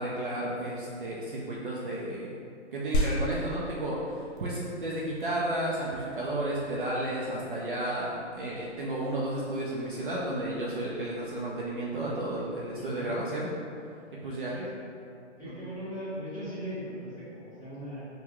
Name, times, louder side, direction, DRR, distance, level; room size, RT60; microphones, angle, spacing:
voice 1, 0.0-2.4 2.7-13.5 14.2-14.6 15.4-15.7, right 1 dB, 45° right, -5 dB, 0.5 m, -32 dB
sound 1, 2.9-12.9, equal, 45° left, 0.5 m, -38 dB
voice 2, 12.7-13.2 14.5-14.7 15.4-18.1, equal, 10° left, -15 dB, 1.0 m, -39 dB
3.7 x 2.2 x 2.9 m, 2.4 s
hypercardioid pair, 150°, 36 cm